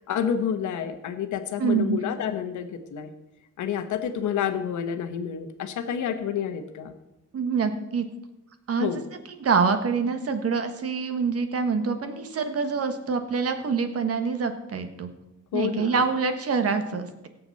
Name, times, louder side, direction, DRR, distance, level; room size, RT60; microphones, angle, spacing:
voice 1, 0.0-3.1 3.6-6.9 8.8-9.0 15.5-16.0, left 8 dB, 75° left, 8 dB, 1.2 m, -29 dB
voice 2, 1.6-2.0 7.3-8.1 8.7-8.9 9.4-15.1 15.5-17.3, right 5 dB, 50° right, 7 dB, 1.4 m, -25 dB
17.5 x 7.0 x 4.2 m, 0.95 s
cardioid pair, 90°, 30 cm